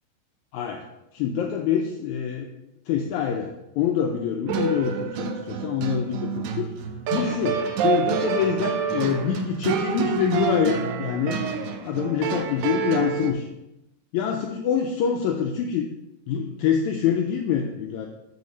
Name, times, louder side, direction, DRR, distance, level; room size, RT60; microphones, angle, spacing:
voice 1, 0.5-0.8 1.1-2.6 2.9-3.5 3.8-6.7 7.1-11.4 11.8-13.5 14.1-15.9 16.3-18.1, left 8 dB, 85° left, 3 dB, 1.7 m, -25 dB
sound 1, 4.5-13.3, right 6 dB, 80° right, 1.8 m, -27 dB
8.2 x 7.1 x 3.1 m, 0.91 s
omnidirectional pair, 3.9 m